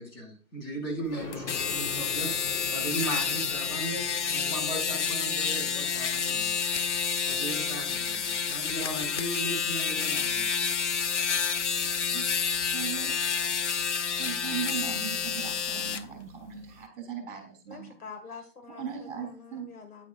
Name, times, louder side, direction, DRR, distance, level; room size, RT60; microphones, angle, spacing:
voice 1, 0.0-6.5 7.3-10.4, right 1 dB, 30° left, -1 dB, 4.8 m, -37 dB
sound 1, 1.1-8.4, left 2 dB, 85° left, 5.3 m, -45 dB
sound 2, 1.3-16.0, left 6 dB, 50° left, 0.6 m, -29 dB
voice 2, 11.7-12.4 12.7-13.3 14.1-17.9 18.8-19.7, right 7 dB, 30° right, 4 dB, 3.2 m, -38 dB
voice 3, 17.7-20.1, left 5 dB, 65° left, 5 dB, 2.2 m, -46 dB
9.9 x 9.7 x 2.5 m, 0.37 s
hypercardioid pair, 150°, 47 cm